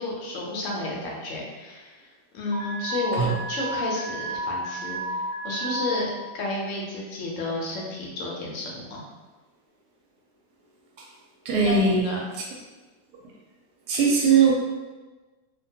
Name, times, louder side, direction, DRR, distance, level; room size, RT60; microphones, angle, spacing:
voice 1, 0.0-2.1 2.3-9.0 11.6-12.2, left 2 dB, 70° left, -3 dB, 0.8 m, -31 dB
Alarm, 2.5-6.0, right 1 dB, 85° left, 1.3 m, -31 dB
voice 2, 11.5-12.0 13.9-14.5, right 5 dB, 75° right, -2 dB, 1.1 m, -19 dB
2.7 x 2.1 x 2.7 m, 1.2 s
omnidirectional pair, 1.8 m